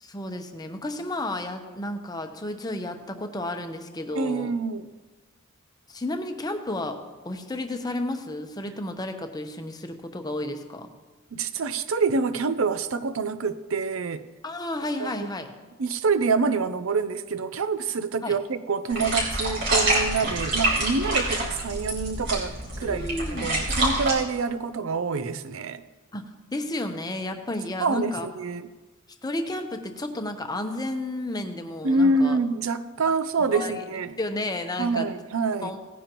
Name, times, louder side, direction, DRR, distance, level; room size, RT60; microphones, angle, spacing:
voice 1, 0.0-4.5 5.9-7.0 7.2-10.9 14.4-15.5 18.2-18.4 22.8-23.5 26.1-26.2 26.5-28.3 29.2-32.4 33.4-33.7 34.2-35.1 35.6-35.8, left 1 dB, 20° left, 6 dB, 0.8 m, -32 dB
voice 2, 4.2-4.9 11.3-14.2 15.0-15.1 15.8-25.8 27.8-28.7 31.8-34.2 34.8-35.7, right 4 dB, 85° right, 12 dB, 0.6 m, -26 dB
sound 1, 18.9-24.1, right 1 dB, 60° right, 4.3 m, -26 dB
17.5 x 10.0 x 3.0 m, 1.3 s
head